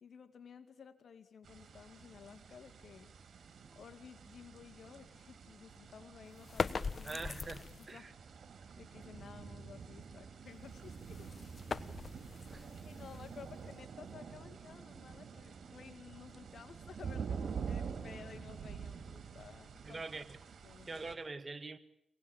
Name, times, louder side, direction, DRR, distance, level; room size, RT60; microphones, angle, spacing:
voice 1, 0.0-3.1 3.7-7.2 7.8-8.1 8.8-11.3 12.8-20.0 20.6-20.9, left 6 dB, 65° left, 2.3 m, -54 dB
sound 1, 1.4-21.2, right 6 dB, 70° right, 3.9 m, -47 dB
sound 2, 6.4-8.0 10.7-13.7, left 4 dB, 50° left, 1.2 m, -41 dB
voice 2, 7.0-8.1 12.5-12.7 19.8-20.4 20.9-21.8, right 3 dB, 40° right, 2.0 m, -44 dB
26.0 x 19.5 x 8.9 m
cardioid pair, 55°, 0 cm